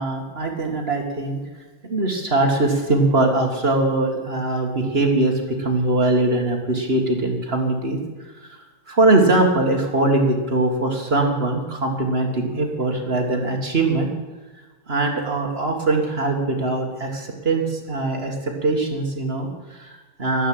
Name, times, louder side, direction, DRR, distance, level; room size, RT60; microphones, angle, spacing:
voice 1, 0.0-1.4 1.8-8.0 8.4-8.6 8.9-14.1 14.9-20.5, right 2 dB, 35° right, 1 dB, 1.0 m, -21 dB
12.5 x 11.5 x 8.7 m, 1.3 s
omnidirectional pair, 4.3 m